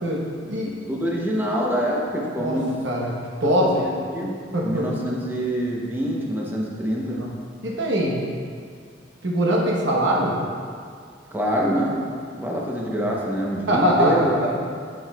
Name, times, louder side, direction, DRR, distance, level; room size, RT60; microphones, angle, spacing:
voice 1, 0.0-0.7 2.4-2.6 2.8-3.1 3.4-3.8 4.5-4.9 7.2-7.3 7.6-8.2 9.2-10.4 13.7-14.3, equal, 70° right, -2 dB, 1.1 m, -22 dB
voice 2, 0.9-2.7 3.4-7.2 11.3-12.0 12.3-14.6, equal, 10° right, -3 dB, 0.8 m, -26 dB
7.7 x 7.1 x 2.3 m, 2.2 s
head